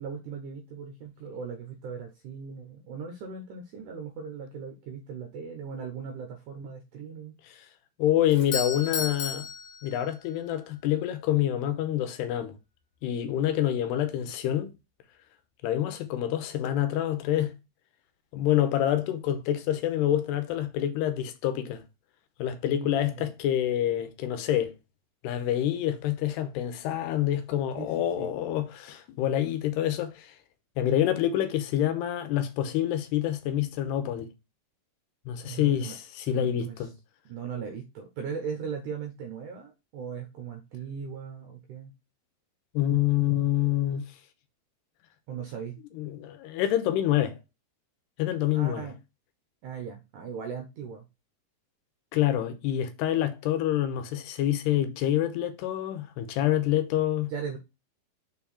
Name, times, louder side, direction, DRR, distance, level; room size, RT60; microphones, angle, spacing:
voice 1, 0.0-7.3 22.7-23.3 27.8-28.3 35.4-36.0 36.3-36.9 37.3-41.9 45.3-45.8 48.5-49.0 49.6-51.1 57.3-57.6, right 6 dB, 75° right, 1.9 m, -38 dB
voice 2, 8.0-9.5 9.8-12.5 13.0-14.7 15.6-17.5 18.3-21.8 22.4-24.7 25.2-30.3 30.8-34.3 35.3-36.9 42.7-44.1 45.9-47.4 48.2-48.9 52.1-57.3, left 12 dB, 85° left, 2.9 m, -27 dB
Doorbell, 8.3-10.5, left 5 dB, 60° left, 2.0 m, -34 dB
6.1 x 4.6 x 4.2 m
omnidirectional pair, 4.7 m